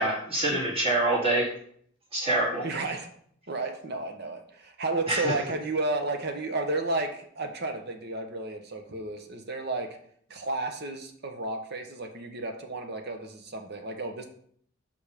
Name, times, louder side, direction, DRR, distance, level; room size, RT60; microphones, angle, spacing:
voice 1, 0.0-1.5 2.1-2.6 5.1-5.3, right 2 dB, 30° right, -3 dB, 2.0 m, -25 dB
voice 2, 2.6-3.1 3.5-10.0 10.3-14.2, right 2 dB, 50° right, 5 dB, 1.0 m, -32 dB
5.4 x 5.2 x 5.1 m, 0.63 s
head